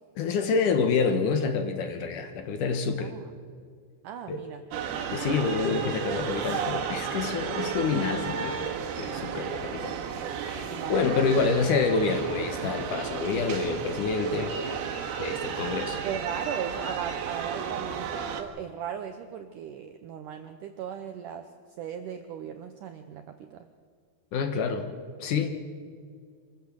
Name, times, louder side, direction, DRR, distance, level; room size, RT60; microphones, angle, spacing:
voice 1, 0.2-3.1 4.3-4.4 5.1-8.7 9.0-10.0 10.4-14.5 15.2-16.0 24.3-24.9 25.2-25.5, left 5 dB, 65° left, 7 dB, 2.2 m, -27 dB
voice 2, 4.0-4.6 10.7-11.1 11.4-11.5 16.0-21.5 21.8-23.7, right 8 dB, 85° right, 7 dB, 1.8 m, -37 dB
sound 1, 4.7-18.4, right 7 dB, 70° right, 3.3 m, -33 dB
25.5 x 14.5 x 7.5 m, 2.1 s
omnidirectional pair, 4.9 m